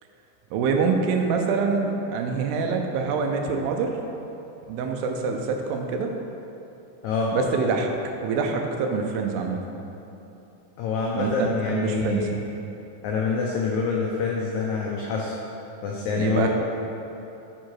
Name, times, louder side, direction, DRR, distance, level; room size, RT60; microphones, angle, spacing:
voice 1, 0.5-3.9 4.7-6.1 7.3-7.9 8.2-9.6 11.2-12.4 16.2-16.5, right 4 dB, 85° right, 3 dB, 2.4 m, -25 dB
voice 2, 10.8-12.3 13.0-15.3 15.8-16.5, left 5 dB, 85° left, -2 dB, 1.6 m, -26 dB
7.6 x 4.7 x 4.6 m, 3.0 s
omnidirectional pair, 4.1 m